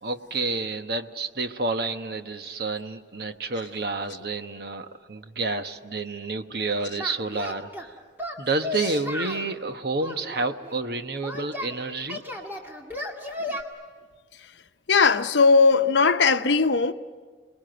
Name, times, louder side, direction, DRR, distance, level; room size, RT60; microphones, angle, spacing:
voice 1, 0.0-7.9 8.4-12.2, right 3 dB, 55° right, 1.1 m, -29 dB
Singing, 7.0-7.9 8.2-9.5 10.0-11.7 12.1-13.6, left 1 dB, 10° right, 2.1 m, -34 dB
voice 2, 14.9-16.9, left 4 dB, 75° left, 0.8 m, -18 dB
29.5 x 21.0 x 7.8 m
head